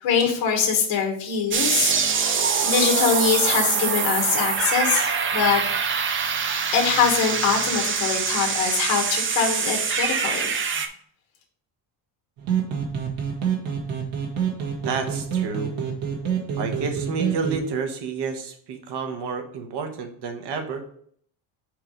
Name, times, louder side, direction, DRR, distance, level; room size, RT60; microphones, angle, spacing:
voice 1, 0.0-2.0 2.6-5.7 6.7-10.5, left 6 dB, 65° left, 0 dB, 1.5 m, -23 dB
sound 1, 1.5-10.9, right 6 dB, 30° right, 0.4 m, -24 dB
sound 2, 12.4-17.6, right 7 dB, 70° right, 1.9 m, -27 dB
voice 2, 14.8-15.7 16.6-20.8, right 5 dB, 55° right, 6 dB, 1.1 m, -30 dB
4.8 x 4.7 x 5.0 m, 0.62 s
cardioid pair, 175°, 49 cm